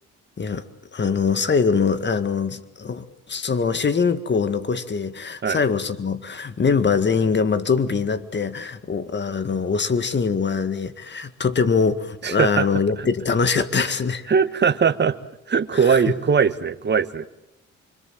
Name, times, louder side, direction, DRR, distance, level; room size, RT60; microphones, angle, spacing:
voice 1, 0.9-14.3 15.7-16.1, left 5 dB, 40° left, 11 dB, 2.0 m, -23 dB
voice 2, 12.2-12.7 13.0-13.1 14.3-15.1 15.5-17.3, right 6 dB, 35° right, 11 dB, 1.5 m, -20 dB
26.5 x 25.0 x 7.7 m, 0.85 s
cardioid pair, 85°, 29 cm